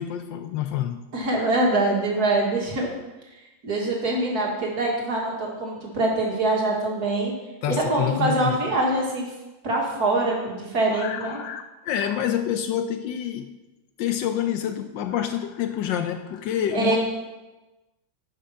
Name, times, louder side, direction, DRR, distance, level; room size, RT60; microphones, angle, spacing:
voice 1, 0.0-1.1 7.6-8.6 10.9-13.5 14.0-17.0, left 10 dB, 75° left, 1.2 m, -27 dB
voice 2, 1.1-2.9 3.6-7.3 7.7-9.3 9.6-11.4 16.7-17.0, right 2 dB, 50° right, 2.2 m, -24 dB
9.6 x 6.1 x 5.6 m
omnidirectional pair, 2.2 m